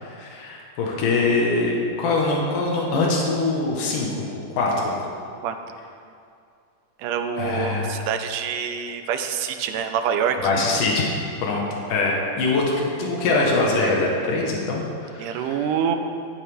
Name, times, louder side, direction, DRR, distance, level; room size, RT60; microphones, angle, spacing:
voice 1, 0.0-4.1 4.5-5.0 7.3-7.9 10.4-11.1 11.4-11.6 11.9-15.7, left 3 dB, 85° left, -2 dB, 3.0 m, -23 dB
voice 2, 7.0-10.4 15.2-16.0, right 7 dB, 85° right, 6 dB, 2.3 m, -26 dB
14.0 x 11.0 x 3.5 m, 2.4 s
omnidirectional pair, 3.6 m